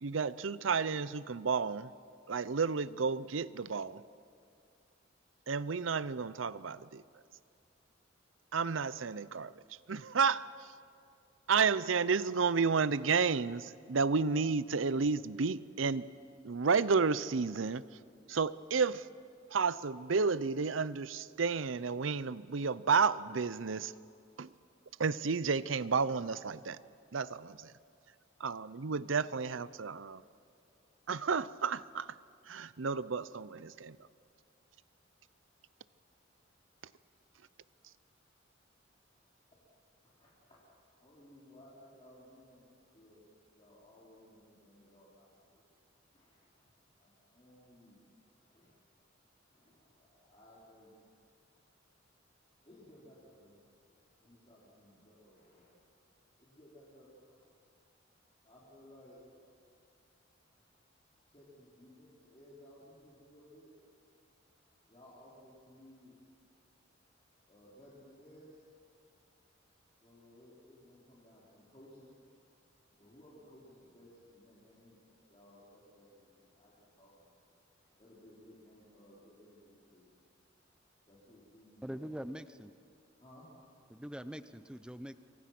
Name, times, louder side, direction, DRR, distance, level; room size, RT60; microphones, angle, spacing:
voice 1, 0.0-1.9 2.3-4.0 5.5-7.0 8.5-9.5 9.9-10.5 11.5-16.0 16.4-17.8 18.3-19.1 19.5-23.9 24.4-24.5 25.0-26.8 27.1-27.7 28.4-30.2 31.1-32.1 32.5-34.0, right 5 dB, 75° right, 17 dB, 0.7 m, -31 dB
voice 2, 40.0-40.6 41.0-42.7 42.9-43.2 43.5-45.6 46.1-46.6 47.0-48.0 48.5-48.7 49.0-49.1 49.5-50.9 52.6-55.7 56.4-57.5 58.4-59.2 61.3-63.7 64.9-66.1 67.4-68.6 69.9-72.1 72.9-77.4 77.8-80.1 81.0-82.0 83.2-83.4, left 1 dB, 30° left, -8 dB, 4.7 m, -59 dB
voice 3, 81.8-82.7 83.9-85.2, equal, 5° right, 12 dB, 0.7 m, -43 dB
27.5 x 24.0 x 6.1 m, 2.3 s
head